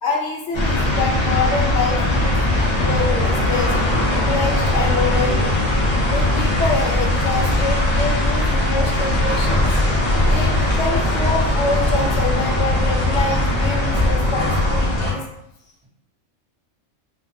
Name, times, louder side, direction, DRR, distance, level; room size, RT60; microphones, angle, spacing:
voice 1, 0.0-3.9 4.2-5.6 6.1-9.7 10.2-15.2, left 3 dB, 70° left, -1 dB, 0.8 m, -26 dB
sound 1, 0.5-15.1, left 1 dB, 40° left, 0.4 m, -19 dB
voice 2, 9.6-10.7, equal, 60° right, -8 dB, 0.3 m, -51 dB
2.2 x 2.2 x 2.5 m, 0.80 s
omnidirectional pair, 1.3 m